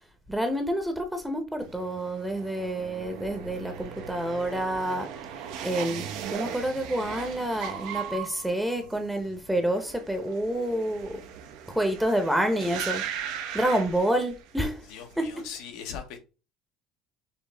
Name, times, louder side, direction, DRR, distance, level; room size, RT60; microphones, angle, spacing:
voice 1, 0.3-5.1 5.6-11.2 11.7-13.0 13.5-14.8 15.2-15.3, right 1 dB, 5° right, 0.7 m, -28 dB
sound 1, 1.6-14.7 15.0-15.6, right 8 dB, 80° right, 0.6 m, -38 dB
voice 2, 14.9-16.2, left 7 dB, 80° left, 0.8 m, -39 dB
5.3 x 2.0 x 3.3 m
cardioid pair, 115°, 0 cm